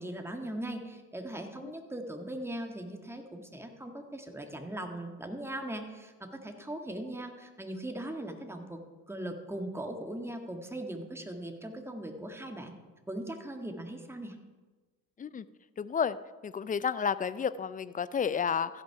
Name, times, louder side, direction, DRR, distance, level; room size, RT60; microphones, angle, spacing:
voice 1, 0.0-8.8 9.1-12.7 13.1-14.4, right 1 dB, 5° right, 4 dB, 1.7 m, -39 dB
voice 2, 15.8-16.2 16.4-18.8, left 7 dB, 20° left, 16 dB, 0.4 m, -31 dB
15.0 x 5.9 x 4.7 m, 1.3 s
hypercardioid pair, 60°, 41 cm